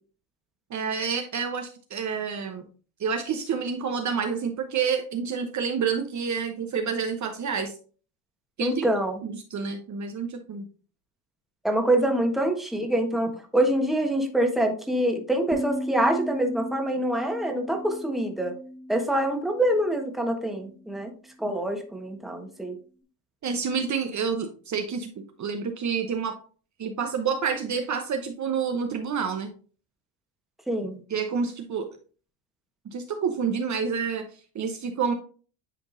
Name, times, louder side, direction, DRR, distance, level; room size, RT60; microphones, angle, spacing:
voice 1, 0.7-2.7 3.0-7.7 8.6-8.9 9.2-10.6 23.4-26.4 26.8-29.5 31.1-31.9 32.9-34.3 34.5-35.1, right 6 dB, 40° right, 5 dB, 0.9 m, -28 dB
voice 2, 8.6-9.2 11.6-18.5 18.9-21.1 21.4-22.8 30.7-31.0, right 1 dB, ahead, 3 dB, 1.3 m, -25 dB
sound 1, 15.5-20.7, equal, 15° right, 1.7 m, -37 dB
10.0 x 3.6 x 2.6 m, 0.39 s
supercardioid pair, 95°, 44 cm